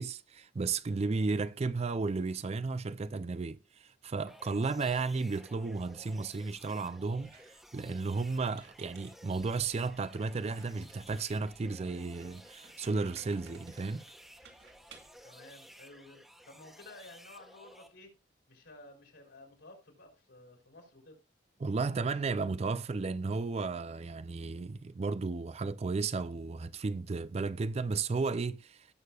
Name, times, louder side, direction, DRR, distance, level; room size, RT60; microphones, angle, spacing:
voice 1, 0.0-14.1 21.6-28.9, right 4 dB, 35° right, 0.4 m, -34 dB
sound 1, 4.3-17.9, equal, ahead, 1.3 m, -55 dB
Squeak, 7.1-15.2, right 4 dB, 60° right, 2.2 m, -59 dB
voice 2, 15.2-18.2 18.5-21.2, left 2 dB, 70° left, 3.9 m, -54 dB
18.0 x 6.6 x 2.3 m
head